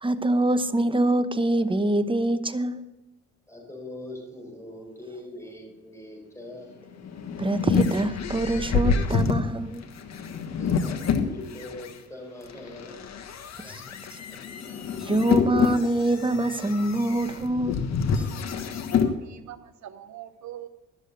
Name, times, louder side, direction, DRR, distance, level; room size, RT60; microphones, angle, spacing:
voice 1, 0.0-2.8 7.4-9.9 13.6-13.8 14.1-14.2 15.0-17.8, right 1 dB, 15° right, 0.9 m, -24 dB
voice 2, 3.5-6.8 10.6-13.0 13.5-13.8 14.3-14.5, left 1 dB, 10° left, 4.6 m, -42 dB
sound 1, 6.9-11.9 12.5-19.1, left 6 dB, 60° left, 1.4 m, -27 dB
voice 3, 18.7-20.7, right 11 dB, 70° right, 1.0 m, -43 dB
12.5 x 7.2 x 6.7 m
cardioid pair, 75°, 30 cm